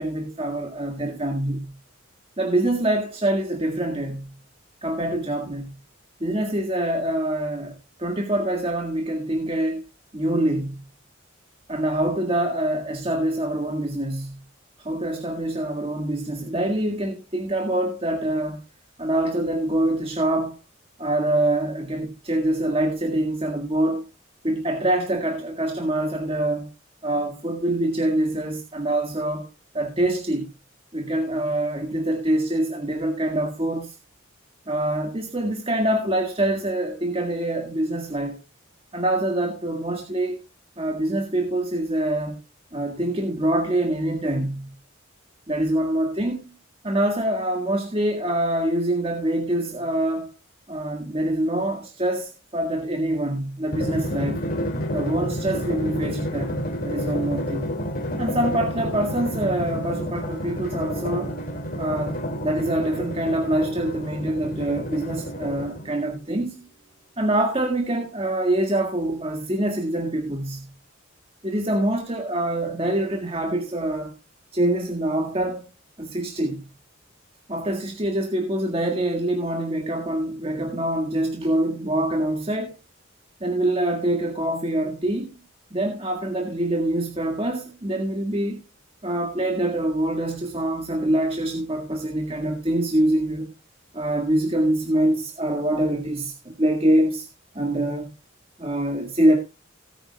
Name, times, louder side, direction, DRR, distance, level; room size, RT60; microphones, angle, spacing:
voice 1, 0.0-1.7 2.4-4.3 4.8-5.7 6.2-9.8 10.1-10.8 11.7-14.4 14.8-18.6 19.0-20.6 21.0-24.0 24.4-26.7 27.0-29.5 29.7-30.5 30.9-34.0 34.7-38.4 38.9-40.4 40.8-42.4 42.7-44.7 45.5-46.5 46.8-50.3 50.7-54.4 54.9-57.8 58.2-61.4 61.8-66.7 67.2-70.7 71.4-74.1 74.5-75.6 76.0-76.7 77.5-82.8 83.4-85.3 85.7-88.6 89.0-93.5 93.9-97.3 97.5-98.1 98.6-99.4, right 1 dB, 25° right, 1.8 m, -25 dB
Drum, 53.7-66.1, equal, 45° left, 2.5 m, -30 dB
18.0 x 9.0 x 2.3 m
head